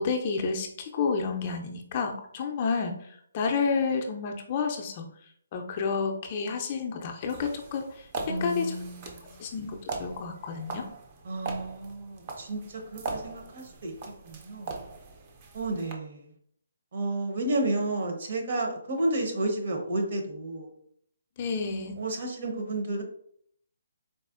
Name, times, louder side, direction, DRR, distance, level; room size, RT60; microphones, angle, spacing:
voice 1, 0.0-5.1 5.5-8.8 9.4-10.9 21.4-22.0, left 5 dB, 35° left, 3 dB, 0.4 m, -30 dB
sound 1, 7.2-15.9, right 3 dB, 30° right, 0.5 m, -40 dB
voice 2, 8.3-9.4 11.2-13.9 14.2-14.8 15.5-16.3 16.9-20.7 22.0-23.0, right 2 dB, 55° right, 2 dB, 0.9 m, -31 dB
4.0 x 2.1 x 2.4 m, 0.65 s
hypercardioid pair, 155°, 0 cm